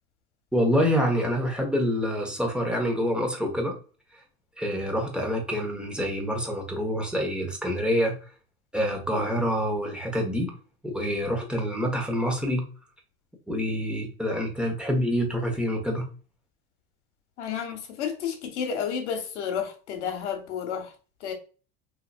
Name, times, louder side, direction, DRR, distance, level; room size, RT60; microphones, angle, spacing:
voice 1, 0.5-3.7 4.6-8.1 8.7-10.5 10.8-12.6 13.5-16.0, equal, 5° right, 1.3 m, -26 dB
voice 2, 17.4-20.9 21.2-21.3, left 7 dB, 90° left, 1.1 m, -31 dB
4.1 x 2.8 x 2.4 m
supercardioid pair, 100°, 34 cm